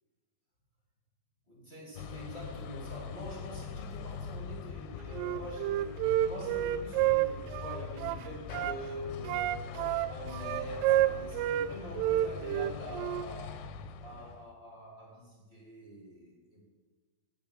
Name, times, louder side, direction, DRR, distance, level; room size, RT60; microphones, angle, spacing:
voice 1, 1.5-9.7 10.1-13.7 14.0-16.6, equal, 30° left, -3 dB, 1.2 m, -45 dB
sound 1, 2.0-14.5, left 6 dB, 80° left, 2.6 m, -43 dB
Wind instrument woodwind instrument, 5.1-8.8 9.3-11.7 12.0-13.3, right 14 dB, 85° right, 3.0 m, -29 dB
9.8 x 8.6 x 6.6 m, 1.4 s
omnidirectional pair, 5.8 m